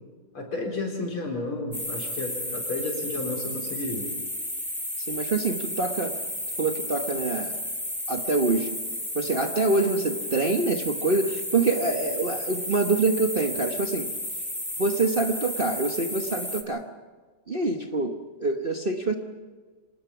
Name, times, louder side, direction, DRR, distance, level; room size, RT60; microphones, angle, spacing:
voice 1, 0.3-4.1, left 2 dB, 85° left, 1 dB, 5.2 m, -32 dB
sound 1, 1.7-16.6, left 1 dB, 5° left, 1.4 m, -33 dB
voice 2, 5.0-6.2 6.6-7.6 8.1-8.8 9.1-14.1 14.8-16.9 17.5-19.1, right 3 dB, 35° right, 3 dB, 0.9 m, -26 dB
26.0 x 19.5 x 5.9 m, 1.4 s
omnidirectional pair, 2.3 m